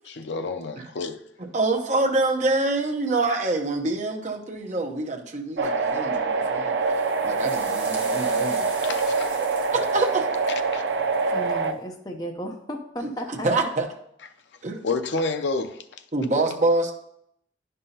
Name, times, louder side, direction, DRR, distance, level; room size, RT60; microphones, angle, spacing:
voice 1, 0.1-1.2 8.8-9.3 10.7-10.8 14.8-16.0, left 3 dB, 65° left, 0.5 m, -29 dB
voice 2, 1.5-8.7 9.2-10.3 13.3-13.9 14.6-14.8 16.1-16.9, right 2 dB, 40° right, 0.8 m, -26 dB
sound 1, 5.6-11.7, right 4 dB, 65° right, 0.5 m, -25 dB
sound 2, 6.8-11.7, right 2 dB, 10° right, 1.3 m, -43 dB
voice 3, 11.3-13.7, equal, 20° left, 0.6 m, -34 dB
9.9 x 5.5 x 2.8 m
head